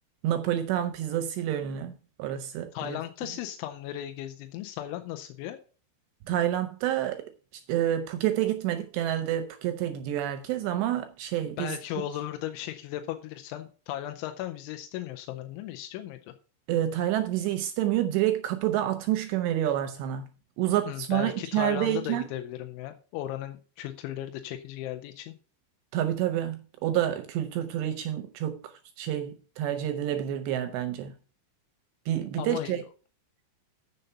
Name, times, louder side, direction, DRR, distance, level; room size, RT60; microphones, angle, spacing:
voice 1, 0.2-3.0 6.3-7.2 7.7-11.8 16.7-20.2 20.6-22.2 25.9-31.1 32.1-32.8, right 12 dB, 80° right, 2.6 m, -28 dB
voice 2, 2.7-5.6 11.6-16.2 20.9-25.3 32.4-32.8, left 12 dB, 85° left, 3.1 m, -36 dB
7.8 x 6.7 x 5.6 m
omnidirectional pair, 5.4 m